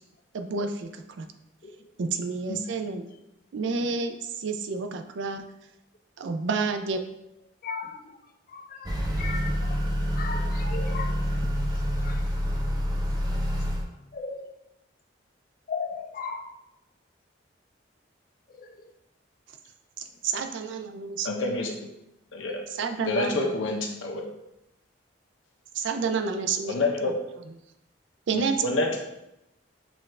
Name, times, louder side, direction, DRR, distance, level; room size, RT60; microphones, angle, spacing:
voice 1, 0.3-1.3 2.0-3.1 3.5-5.4 6.2-7.0 20.0-21.3 22.8-23.5 25.7-27.1 28.3-28.8, right 4 dB, 70° right, 0.4 m, -30 dB
voice 2, 2.6-3.2 3.8-3.9 7.6-9.9 10.1-12.3 14.1-14.5 15.7-16.5 18.6-18.9 20.1-20.5, left 4 dB, 45° left, 0.4 m, -38 dB
Motor vehicle (road) / Accelerating revving vroom, 8.8-13.8, equal, 20° right, 0.6 m, -27 dB
voice 3, 21.2-21.8 22.3-22.6 23.0-24.3 26.7-27.1 28.3-29.0, left 2 dB, 80° left, 0.8 m, -28 dB
5.9 x 2.5 x 3.2 m
head